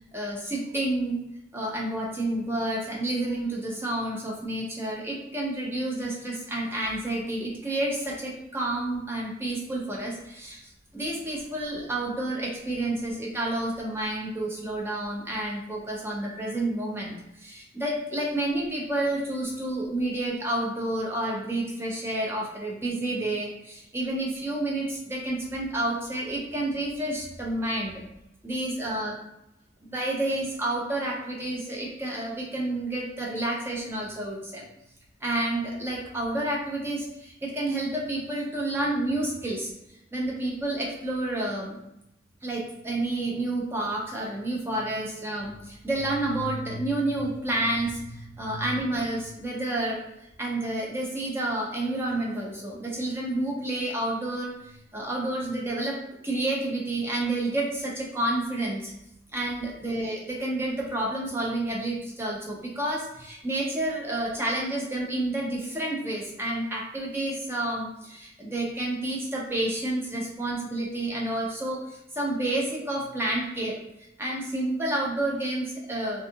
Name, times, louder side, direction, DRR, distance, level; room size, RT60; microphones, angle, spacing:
voice 1, 0.1-1.2 1.5-10.6 10.9-28.0 28.4-29.1 29.8-34.6 35.2-39.7 40.1-41.8 42.4-50.0 50.4-56.0 56.2-58.9 59.3-73.8 74.2-76.2, right 1 dB, 15° right, -3 dB, 0.4 m, -30 dB
2.6 x 2.3 x 2.6 m, 0.85 s
head